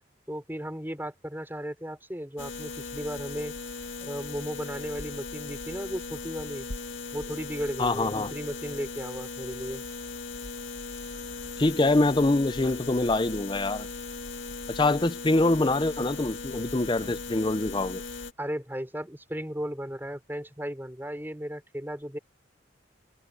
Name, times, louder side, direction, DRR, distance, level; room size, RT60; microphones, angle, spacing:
voice 1, 0.3-3.5 4.0-6.7 7.1-9.8 18.4-22.2, equal, 10° right, 5.7 m, -35 dB
sound 1, 2.4-18.3, left 3 dB, 75° left, 2.2 m, -38 dB
voice 2, 7.8-8.3 11.6-13.9 14.7-18.0, left 2 dB, 25° left, 0.5 m, -25 dB
head